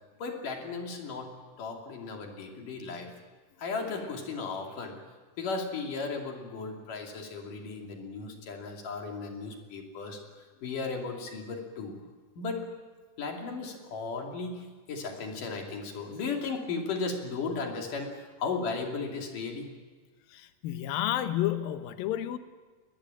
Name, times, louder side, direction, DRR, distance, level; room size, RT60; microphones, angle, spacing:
voice 1, 0.2-1.3 1.6-3.1 3.6-5.0 5.4-10.2 10.6-11.9 12.4-12.6 13.2-19.7, left 4 dB, 50° left, 2 dB, 3.9 m, -35 dB
voice 2, 20.3-22.4, left 12 dB, 70° left, 9 dB, 2.5 m, -30 dB
22.5 x 19.5 x 8.9 m, 1.4 s
omnidirectional pair, 5.1 m